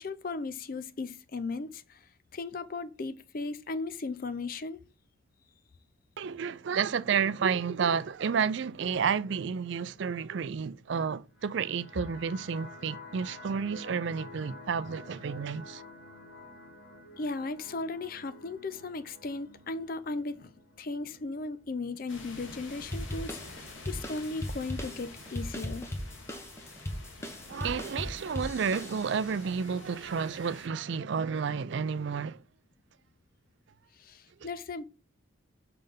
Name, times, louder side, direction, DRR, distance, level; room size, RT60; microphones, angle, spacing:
voice 1, 0.0-4.8 17.2-20.5 20.8-25.9 33.9-34.8, left 3 dB, 45° left, 0.5 m, -37 dB
voice 2, 6.2-15.8 27.5-32.4, right 6 dB, 60° right, 0.4 m, -31 dB
sound 1, 11.3-22.3, left 2 dB, 85° left, 1.7 m, -50 dB
sound 2, 22.1-30.7, left 2 dB, 70° left, 1.4 m, -49 dB
sound 3, 22.9-29.4, left 1 dB, 15° left, 0.8 m, -38 dB
5.5 x 3.4 x 5.4 m
head